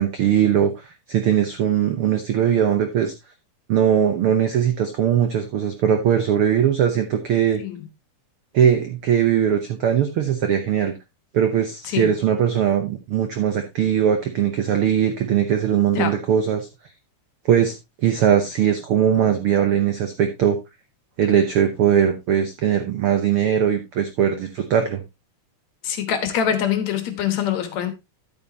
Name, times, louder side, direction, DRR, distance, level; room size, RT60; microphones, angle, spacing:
voice 1, 0.0-3.1 3.7-7.6 8.5-10.9 11.3-16.7 17.5-17.7 18.0-20.6 21.2-25.0, right 9 dB, 80° right, 1.2 m, -20 dB
voice 2, 25.8-27.9, left 9 dB, 65° left, 2.3 m, -24 dB
11.0 x 8.9 x 2.8 m
omnidirectional pair, 3.8 m